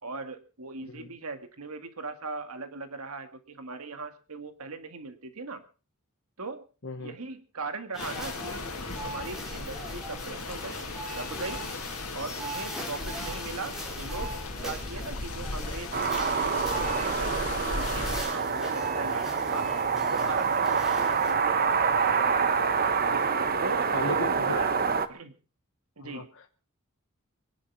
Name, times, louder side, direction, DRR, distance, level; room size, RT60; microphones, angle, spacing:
voice 1, 0.0-5.6 6.4-6.6 7.0-8.7 9.0-10.8 11.1-11.6 12.1-19.7 20.1-23.0 23.6-24.8 25.1-25.3 26.0-26.3, right 4 dB, 85° right, 8 dB, 1.8 m, -39 dB
voice 2, 6.8-7.1 23.9-24.6 26.0-26.5, left 3 dB, 60° left, 3 dB, 1.4 m, -36 dB
sound 1, 7.9-21.3, equal, ahead, 5.1 m, -40 dB
sound 2, 8.0-18.2, left 3 dB, 85° left, 2.6 m, -37 dB
sound 3, 15.9-25.1, right 5 dB, 45° right, 1.2 m, -26 dB
24.5 x 10.5 x 4.6 m, 0.37 s
head